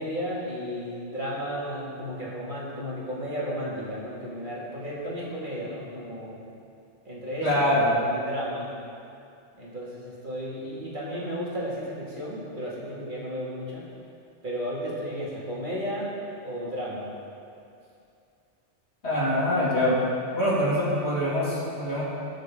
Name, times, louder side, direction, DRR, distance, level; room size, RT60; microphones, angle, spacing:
voice 1, 0.0-6.4 7.0-7.5 8.1-8.7 9.6-13.9 14.4-16.1 16.4-17.1, equal, 45° right, -7 dB, 2.5 m, -33 dB
voice 2, 7.4-7.9 19.0-20.0 20.3-22.0, left 1 dB, 65° left, -8 dB, 3.0 m, -24 dB
19.0 x 6.5 x 3.8 m, 2.5 s
omnidirectional pair, 1.2 m